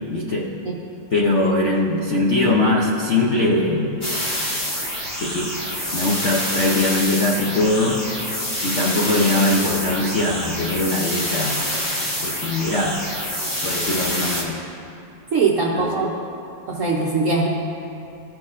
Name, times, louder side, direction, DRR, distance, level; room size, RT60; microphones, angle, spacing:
voice 1, 0.1-0.5 1.1-4.0 5.2-5.5 5.9-8.0 8.6-11.6 12.2-13.0 13.6-14.6 15.7-16.2, left 2 dB, 55° left, -4 dB, 0.8 m, -21 dB
sound 1, 4.0-14.4, equal, 35° left, 1.4 m, -26 dB
voice 2, 15.3-16.1 16.7-17.5, right 4 dB, 60° right, -2 dB, 0.9 m, -21 dB
15.5 x 6.1 x 2.5 m, 2.7 s
omnidirectional pair, 2.0 m